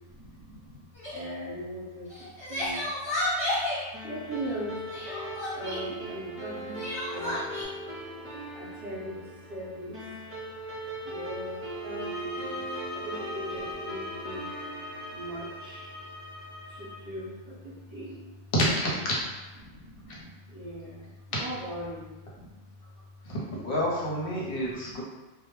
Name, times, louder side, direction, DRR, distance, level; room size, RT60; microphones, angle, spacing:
voice 1, 0.1-0.8 1.1-2.9 4.0-4.9 5.5-6.8 7.1-7.6 8.5-10.0 11.0-14.5 15.1-15.9 16.7-18.2 19.6-22.5 24.6-25.0, equal, 35° right, -8 dB, 0.9 m, -40 dB
Crying sobbing, 1.0-1.2 2.1-3.8 4.9-5.9 6.7-7.6, left 1 dB, 35° left, 1.0 m, -32 dB
sound 1, 3.9-16.7, right 1 dB, 15° right, 0.5 m, -40 dB
sound 2, 11.7-17.0, left 3 dB, 60° right, 0.8 m, -41 dB
voice 2, 18.5-19.1 23.2-25.0, equal, 65° left, -5 dB, 0.9 m, -28 dB
2.2 x 2.0 x 3.0 m, 1.2 s
omnidirectional pair, 1.0 m